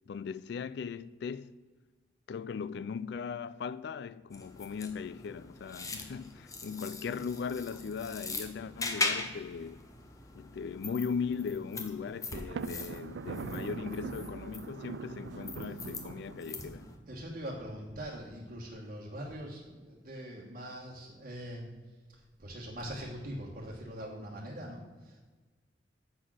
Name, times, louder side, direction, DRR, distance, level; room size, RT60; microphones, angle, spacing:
voice 1, 0.1-1.6 2.3-9.8 10.4-16.9, left 6 dB, 65° left, 0.3 m, -38 dB
sound 1, 4.3-17.0, left 3 dB, 20° left, 0.9 m, -41 dB
Thunder, 12.3-16.9, right 5 dB, 75° right, 0.4 m, -42 dB
voice 2, 17.1-21.7 22.4-25.2, equal, 45° right, 1.3 m, -42 dB
7.2 x 6.3 x 6.1 m
head